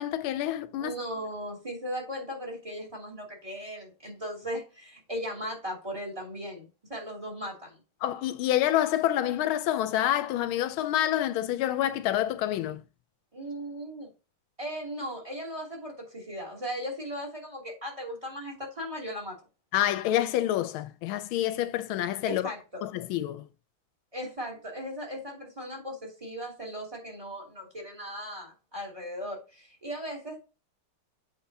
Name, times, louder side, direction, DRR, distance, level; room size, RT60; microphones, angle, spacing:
voice 1, 0.0-0.9 8.0-12.8 19.7-22.5 22.8-23.5, left 12 dB, 80° left, 1.4 m, -27 dB
voice 2, 0.8-7.8 13.3-14.1 14.6-19.4 22.2-22.9 24.1-30.4, equal, 15° right, 2.6 m, -37 dB
8.2 x 5.6 x 2.7 m
omnidirectional pair, 2.3 m